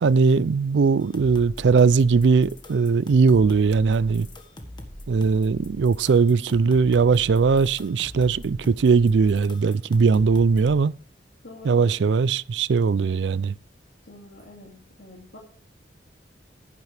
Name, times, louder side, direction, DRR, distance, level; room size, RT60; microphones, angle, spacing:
voice 1, 0.0-4.3 5.1-10.9 11.6-13.5, right 5 dB, 75° right, 0.4 m, -19 dB
sound 1, 1.0-10.8, equal, 25° left, 1.6 m, -42 dB
voice 2, 11.4-11.9 14.1-15.4, left 2 dB, 70° left, 2.4 m, -45 dB
11.0 x 10.5 x 3.4 m
head